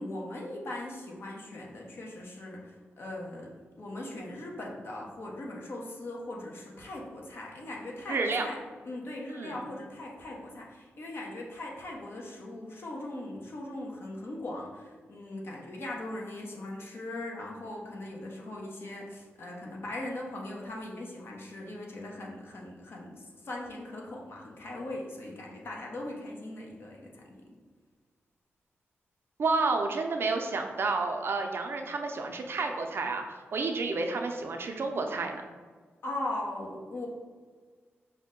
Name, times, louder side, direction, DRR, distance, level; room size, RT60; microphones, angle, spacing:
voice 1, 0.0-3.5 3.8-8.6 8.8-27.5 36.0-37.1, left 1 dB, 60° left, -2 dB, 0.9 m, -39 dB
voice 2, 8.1-8.5 9.4-9.6 29.4-33.2 33.5-35.4, right 3 dB, 60° right, 4 dB, 0.5 m, -30 dB
5.3 x 2.1 x 3.7 m, 1.5 s
cardioid pair, 80°, 5 cm